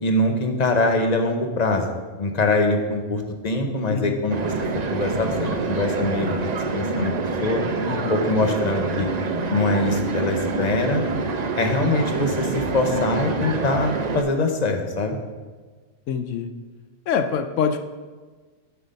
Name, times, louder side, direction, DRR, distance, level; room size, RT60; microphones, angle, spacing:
voice 1, 0.0-1.9 2.2-4.5 4.9-7.1 7.4-7.6 8.1-9.1 9.5-11.0 11.5-15.2, left 2 dB, 35° left, 4 dB, 0.9 m, -23 dB
voice 2, 3.9-4.2 7.9-8.2 16.1-16.5 17.1-17.8, left 7 dB, 70° left, 8 dB, 0.9 m, -25 dB
sound 1, 4.3-14.2, right 4 dB, 45° right, 0.6 m, -26 dB
7.8 x 5.7 x 5.3 m, 1.4 s
omnidirectional pair, 1.4 m